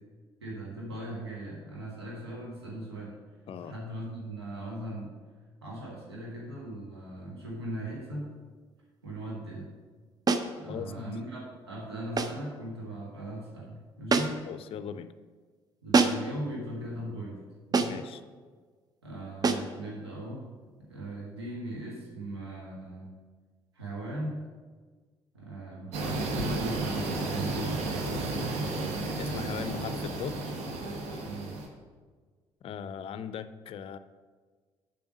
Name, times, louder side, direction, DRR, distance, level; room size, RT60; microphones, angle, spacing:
voice 1, 0.4-3.2 3.6-5.2 5.6-8.3 9.0-9.7 10.6-14.4 15.8-18.1 19.0-20.5 20.9-23.1 23.7-24.5 25.3-27.9 31.2-31.6, right 1 dB, 80° right, -3 dB, 1.4 m, -39 dB
sound 1, 10.3-10.6 12.2-12.5 14.1-14.5 15.9-16.4 17.7-18.1 19.4-19.7, right 4 dB, 30° right, 0.7 m, -26 dB
voice 2, 10.7-11.1 14.5-15.1 17.9-18.2 29.2-30.4 32.6-34.0, left 8 dB, 45° left, 13 dB, 0.5 m, -39 dB
sound 2, 25.9-31.7, right 2 dB, 55° right, 1.2 m, -32 dB
7.0 x 5.9 x 6.1 m, 1.5 s
figure-of-eight pair, 45°, 13 cm